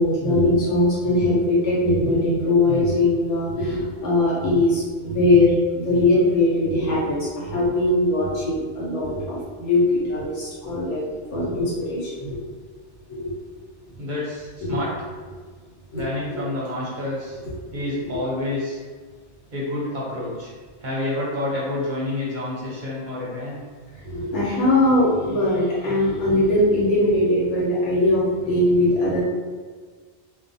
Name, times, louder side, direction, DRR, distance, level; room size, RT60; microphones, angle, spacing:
voice 1, 0.0-12.5 13.1-13.3 14.6-14.8 15.9-16.0 17.7-18.2 24.0-29.2, left 1 dB, 80° left, -7 dB, 1.2 m, -21 dB
voice 2, 14.0-14.9 15.9-17.4 17.7-18.8 19.5-20.5 20.8-23.6, left 2 dB, 50° right, -6 dB, 0.7 m, -28 dB
2.4 x 2.2 x 2.6 m, 1.5 s
omnidirectional pair, 1.2 m